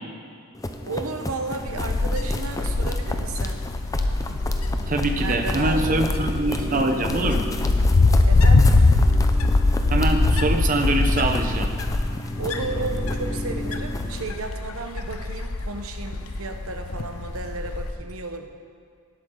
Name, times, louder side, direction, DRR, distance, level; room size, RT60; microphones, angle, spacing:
sound 1, 0.5-14.2, left 1 dB, 15° left, 0.6 m, -33 dB
voice 1, 0.9-3.6 5.2-6.2 8.3-8.7 12.4-18.5, right 3 dB, 75° right, 5 dB, 1.0 m, -33 dB
Wind, 1.6-17.9, left 2 dB, 85° left, 0.7 m, -22 dB
voice 2, 4.9-7.4 9.9-11.7, right 2 dB, 40° right, 5 dB, 0.9 m, -24 dB
17.5 x 8.4 x 3.9 m, 2.1 s
head